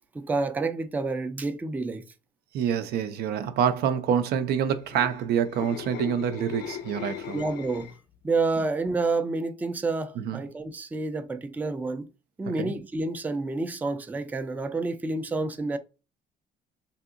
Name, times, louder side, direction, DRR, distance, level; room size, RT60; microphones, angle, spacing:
voice 1, 0.1-2.0 7.3-7.9 8.2-12.1 12.4-15.8, right 3 dB, 10° right, 0.3 m, -29 dB
voice 2, 2.5-7.4 10.2-10.4 12.5-12.7, right 8 dB, 70° right, 0.5 m, -27 dB
sound 1, 4.7-8.2 8.5-8.8, left 10 dB, 75° left, 0.5 m, -38 dB
3.4 x 2.8 x 2.4 m
cardioid pair, 110°, 17 cm